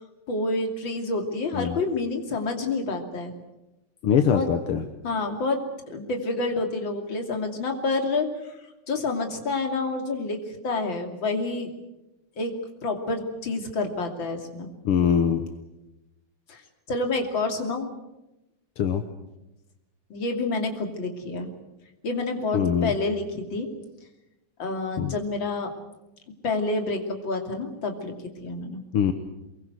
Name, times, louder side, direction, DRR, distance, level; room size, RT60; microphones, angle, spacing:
voice 1, 0.3-3.3 4.3-4.5 5.0-5.7 5.9-8.5 8.9-11.7 12.4-12.6 12.8-14.7 16.5-16.6 16.9-18.0 20.1-21.5 22.0-23.7 24.6-25.7 26.4-28.1 28.4-28.8, left 3 dB, 60° left, 3 dB, 3.5 m, -28 dB
voice 2, 4.0-4.8 14.9-15.5 18.8-19.0 22.5-22.9 25.0-25.1 28.9-29.1, left 8 dB, 80° left, 7 dB, 2.2 m, -22 dB
23.5 x 22.0 x 8.0 m, 0.96 s
omnidirectional pair, 2.4 m